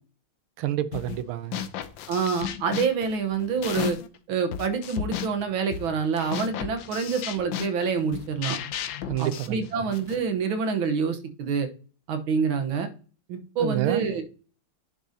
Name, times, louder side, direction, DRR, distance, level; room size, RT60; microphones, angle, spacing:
voice 1, 0.6-1.7 9.1-9.9 13.6-14.1, right 13 dB, 90° right, 1.6 m, -29 dB
sound 1, 0.9-1.2 1.5-4.2 4.5-10.2, left 9 dB, 70° left, 1.3 m, -34 dB
voice 2, 2.1-4.0 4.3-8.6 9.2-11.7 12.1-12.9 13.3-14.2, right 5 dB, 70° right, 1.9 m, -27 dB
10.0 x 6.4 x 2.8 m
omnidirectional pair, 2.3 m